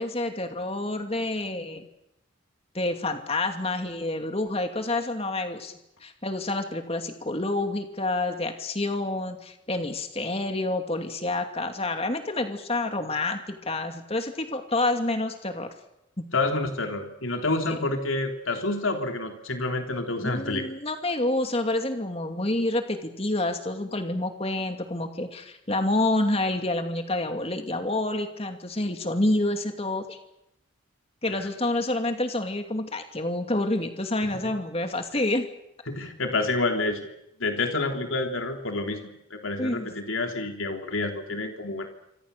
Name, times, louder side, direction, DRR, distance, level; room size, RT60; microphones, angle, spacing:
voice 1, 0.0-1.9 2.7-5.7 6.0-15.7 17.7-17.8 20.2-30.2 31.2-35.5 39.6-39.9, left 2 dB, 30° left, 6 dB, 2.6 m, -28 dB
voice 2, 16.3-20.6 34.2-34.3 35.9-37.1 37.4-41.9, left 2 dB, 75° left, 4 dB, 3.3 m, -28 dB
27.0 x 26.0 x 6.8 m, 0.84 s
head